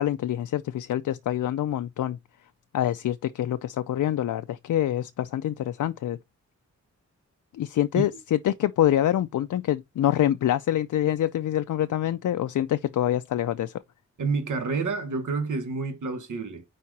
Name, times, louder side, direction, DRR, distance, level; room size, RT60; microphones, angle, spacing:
voice 1, 0.0-2.2 2.7-6.2 7.5-13.7, left 12 dB, 85° left, 0.5 m, -26 dB
voice 2, 14.2-16.6, right 4 dB, 85° right, 1.1 m, -29 dB
4.7 x 4.3 x 4.6 m
wide cardioid pair, 135°, 30 cm